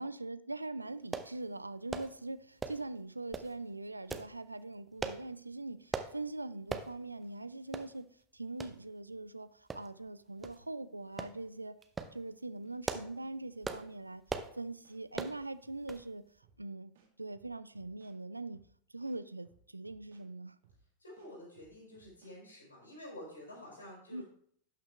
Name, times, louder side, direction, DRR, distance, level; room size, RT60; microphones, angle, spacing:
voice 1, 0.0-8.1 8.3-11.8 12.1-14.2 14.5-16.2 16.6-16.9 17.2-18.6 18.9-20.6 24.1-24.2, right 2 dB, 85° right, 0.4 m, -42 dB
sound 1, 1.1-1.3 1.9-2.1 2.6-2.9 3.3-3.5 4.1-4.3 5.0-5.2 5.9-6.1 6.7-6.9 7.3-7.4 7.7-7.9 8.6-8.7 9.7-10.1 10.4-10.6 11.2-11.4 11.8-12.1 12.6-13.2 13.6-13.9 14.3-14.5 15.1-15.4 15.9-16.1 16.4-16.5, right 4 dB, 15° right, 0.7 m, -39 dB
sound 2, 14.8-16.0 16.4-16.6 16.9-18.2 18.5-18.7 19.0-20.3 20.6-20.8 21.2-22.4, right 6 dB, 55° right, 2.1 m, -66 dB
voice 2, 21.0-24.2, left 1 dB, 75° left, 4.3 m, -49 dB
12.0 x 5.8 x 3.3 m
figure-of-eight pair, 90°, 0 cm